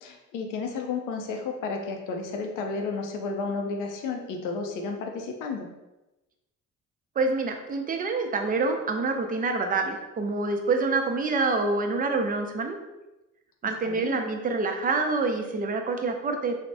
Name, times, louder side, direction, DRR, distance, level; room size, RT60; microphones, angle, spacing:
voice 1, 0.0-5.7 13.9-14.2, left 4 dB, 90° left, 3 dB, 0.5 m, -32 dB
voice 2, 7.2-12.8 13.6-16.6, right 3 dB, 30° right, 4 dB, 0.4 m, -26 dB
3.3 x 2.0 x 2.6 m, 1.0 s
cardioid pair, 90°, 30 cm